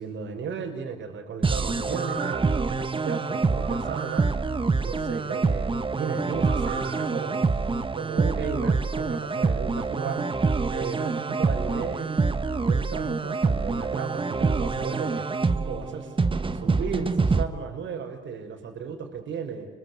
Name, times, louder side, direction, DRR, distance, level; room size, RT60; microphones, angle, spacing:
voice 1, 0.0-4.3 4.7-7.5 7.9-10.3 10.7-16.3 16.5-19.7, right 6 dB, 70° right, 3 dB, 6.0 m, -35 dB
sound 1, 1.4-17.4, right 4 dB, 25° right, 1.6 m, -26 dB
sound 2, 1.8-2.6 3.6-4.3 6.4-7.1 7.5-7.6, right 6 dB, 50° right, 3.5 m, -37 dB
29.5 x 23.5 x 8.3 m, 0.99 s
cardioid pair, 90°, 20 cm